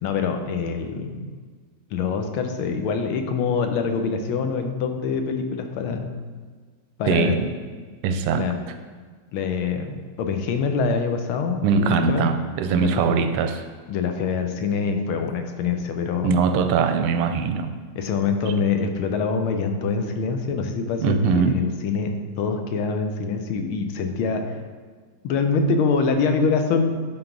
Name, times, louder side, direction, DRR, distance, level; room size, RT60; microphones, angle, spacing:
voice 1, 0.0-1.2 1.9-6.2 7.0-7.3 8.3-8.6 9.3-12.3 12.8-12.9 13.9-16.3 18.0-24.5 25.2-27.0, left 5 dB, 80° left, 5 dB, 1.5 m, -25 dB
voice 2, 7.1-7.5 8.0-8.5 11.6-13.6 16.2-17.7 21.0-21.6, right 5 dB, 85° right, 8 dB, 1.5 m, -21 dB
10.5 x 3.9 x 3.8 m, 1.5 s
omnidirectional pair, 2.4 m